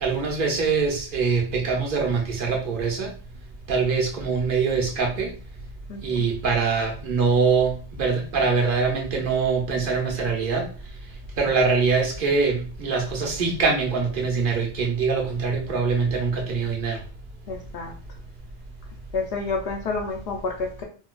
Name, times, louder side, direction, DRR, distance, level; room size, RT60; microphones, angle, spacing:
voice 1, 0.0-3.1 3.7-5.3 6.0-10.7 11.4-17.0, right 4 dB, 50° right, 0.8 m, -23 dB
voice 2, 5.9-6.3 17.5-17.9 19.1-20.8, left 4 dB, 60° left, 0.7 m, -29 dB
4.4 x 2.3 x 2.4 m
omnidirectional pair, 1.3 m